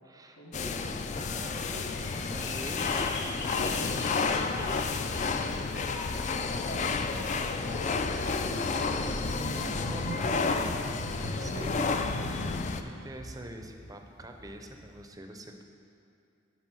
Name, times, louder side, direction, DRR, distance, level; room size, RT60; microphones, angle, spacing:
voice 1, 0.0-3.2 9.5-11.8 12.3-12.6 12.8-15.6, right 1 dB, 20° right, 4 dB, 0.6 m, -45 dB
sound 1, 0.5-12.8, left 4 dB, 35° left, 0.4 m, -31 dB
sound 2, 1.2-15.0, equal, 55° left, 1.8 m, -41 dB
voice 2, 2.2-6.2 6.5-9.0 11.4-12.7, equal, 85° left, -2 dB, 1.5 m, -47 dB
9.8 x 4.7 x 6.1 m, 2.5 s
head